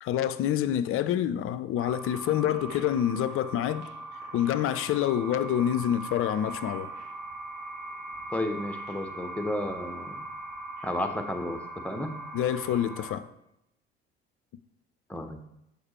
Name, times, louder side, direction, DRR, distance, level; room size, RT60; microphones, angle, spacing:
voice 1, 0.0-3.9 4.3-6.9 12.3-13.3, left 10 dB, 45° left, 0.5 m, -27 dB
sound 1, 1.8-13.1, right 2 dB, 70° right, 2.6 m, -40 dB
voice 2, 8.3-10.2 10.8-12.2 15.1-15.5, left 1 dB, 5° left, 1.0 m, -32 dB
6.6 x 5.1 x 4.4 m
hypercardioid pair, 60°, 30 cm